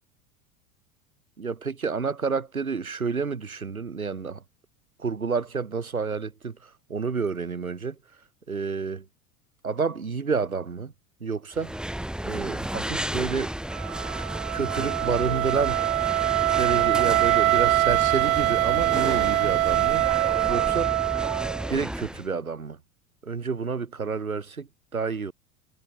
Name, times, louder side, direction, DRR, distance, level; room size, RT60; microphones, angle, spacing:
voice 1, 1.4-4.4 5.0-8.0 8.5-9.1 9.6-10.9 11.2-11.8 12.2-13.6 14.5-15.8 16.6-20.1 20.5-21.0 21.7-22.8 23.2-25.3, right 5 dB, 90° right, 2.0 m, -29 dB
sound 1, 11.5-22.3, right 1 dB, ahead, 1.8 m, -32 dB
Wind instrument woodwind instrument, 13.7-21.7, right 16 dB, 70° right, 0.5 m, -24 dB
figure-of-eight pair, 85°, 41 cm